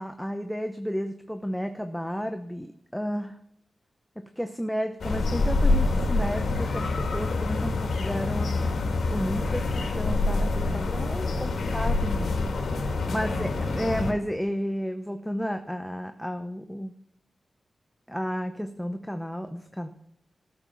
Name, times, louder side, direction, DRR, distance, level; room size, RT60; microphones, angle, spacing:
voice 1, 0.0-3.4 4.4-8.8 9.1-12.3 13.1-16.9 18.1-19.9, equal, ahead, 7 dB, 0.7 m, -32 dB
sound 1, 5.0-14.1, left 3 dB, 80° left, 2.4 m, -26 dB
14.0 x 7.0 x 5.9 m, 0.77 s
wide cardioid pair, 145°, 0 cm